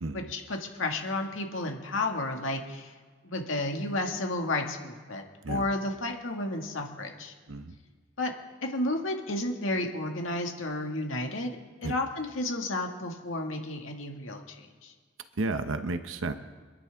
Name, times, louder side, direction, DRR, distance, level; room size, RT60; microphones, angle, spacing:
voice 1, 0.1-2.9 3.2-7.3 8.2-8.3 8.7-14.9, left 2 dB, 90° left, 2 dB, 1.9 m, -32 dB
voice 2, 15.4-16.3, right 2 dB, 85° right, 9 dB, 0.8 m, -32 dB
26.5 x 11.0 x 3.5 m, 1.5 s
head